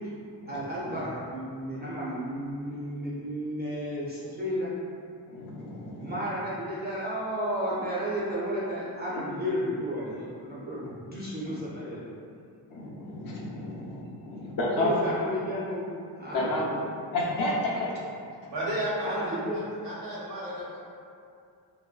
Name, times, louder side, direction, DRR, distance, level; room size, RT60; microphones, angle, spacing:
voice 1, 0.5-4.7 6.0-12.1 14.7-15.9 16.2-16.5 19.0-19.6, equal, 25° right, -8 dB, 0.3 m, -32 dB
voice 2, 5.3-6.1 12.7-14.9 16.3-16.8 17.1-18.0, left 1 dB, 55° left, -4 dB, 0.4 m, -31 dB
voice 3, 18.5-20.8, right 1 dB, 90° right, -6 dB, 1.0 m, -33 dB
2.7 x 2.2 x 2.2 m, 2.4 s
wide cardioid pair, 135°, 42 cm